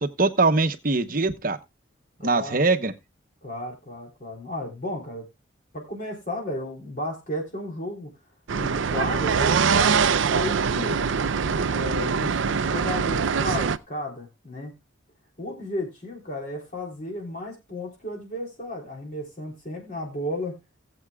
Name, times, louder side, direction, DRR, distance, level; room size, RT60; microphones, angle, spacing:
voice 1, 0.0-1.6 2.2-2.9, right 3 dB, 45° right, 0.9 m, -22 dB
voice 2, 2.2-2.6 3.4-5.3 5.7-8.1 8.5-11.1 11.7-14.7 15.4-20.6, left 1 dB, 40° left, 3.4 m, -33 dB
sound 1, 8.5-13.8, right 6 dB, 75° right, 0.5 m, -23 dB
19.5 x 7.9 x 2.3 m
head